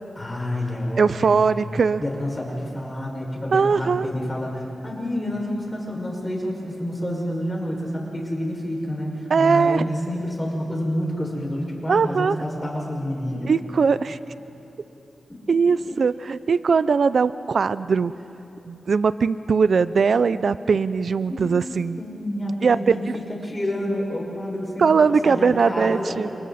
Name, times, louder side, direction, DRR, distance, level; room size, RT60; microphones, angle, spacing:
voice 1, 0.2-1.5 2.0-13.6 15.3-15.8 17.7-17.8 21.3-21.5 22.0-26.3, left 1 dB, 25° left, -2 dB, 6.0 m, -29 dB
voice 2, 1.0-2.0 3.5-4.1 9.3-9.8 11.9-12.4 13.4-14.2 15.5-18.1 18.7-22.0 22.6-23.2 24.8-26.3, right 5 dB, 70° right, 15 dB, 0.5 m, -20 dB
29.5 x 29.0 x 4.3 m, 2.9 s
wide cardioid pair, 80°, 0 cm